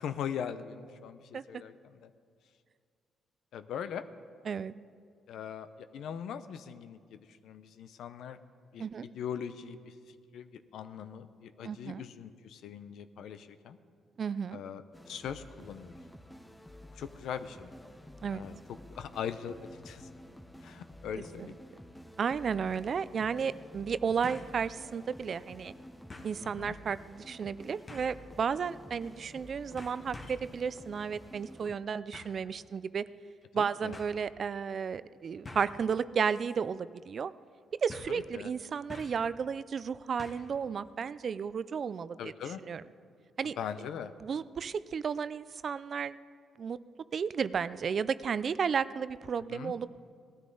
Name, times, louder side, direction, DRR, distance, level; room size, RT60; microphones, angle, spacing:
voice 1, 0.0-1.7 2.0-2.1 3.5-4.0 5.3-8.4 8.7-8.8 9.1-9.8 10.3-13.8 14.5-14.8 15.1-16.0 17.0-17.7 18.3-18.6 19.0-19.6 19.8-20.0 20.6-21.6 26.4-26.8 33.6-34.0 38.1-38.5 42.2-42.6 43.6-44.1 49.5-49.7, left 8 dB, 75° left, 11 dB, 0.6 m, -40 dB
voice 2, 11.6-12.0 14.2-14.6 18.2-18.5 21.4-21.5 22.2-25.7 26.2-33.1 33.5-37.3 37.7-42.3 42.6-42.8 43.4-43.5 44.2-46.2 46.6-46.8 47.1-49.9, right 6 dB, 50° right, 16 dB, 0.4 m, -33 dB
sound 1, 14.9-31.8, left 1 dB, 5° left, 0.8 m, -51 dB
sound 2, 24.2-24.6 25.0-25.1 26.1-26.4 27.9-28.2 29.2-29.4 29.8-30.5 32.1-32.4 33.4-33.5 33.9-34.1 35.4-35.8 36.3-36.6 36.8-36.9 37.9-38.2 38.9-39.3 40.2-40.5 40.8-40.9, left 2 dB, 30° left, 1.5 m, -47 dB
18.0 x 13.0 x 3.9 m, 2.2 s
cardioid pair, 90°, 0 cm